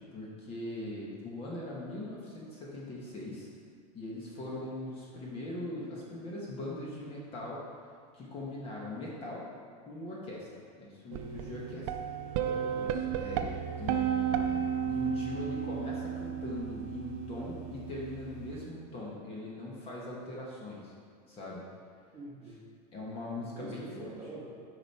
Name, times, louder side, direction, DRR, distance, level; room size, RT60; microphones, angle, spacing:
voice 1, 0.0-3.5 3.9-7.6 8.1-9.5 9.9-11.9 13.1-20.9 21.3-21.7 22.9-24.1, left 1 dB, 30° left, -4 dB, 1.3 m, -41 dB
sound 1, 11.1-18.6, right 8 dB, 55° right, 0.5 m, -34 dB
voice 2, 12.4-13.3 22.1-22.6 23.5-24.5, right 1 dB, 15° right, -6 dB, 1.5 m, -45 dB
7.9 x 5.2 x 4.3 m, 2.2 s
supercardioid pair, 160°, 20 cm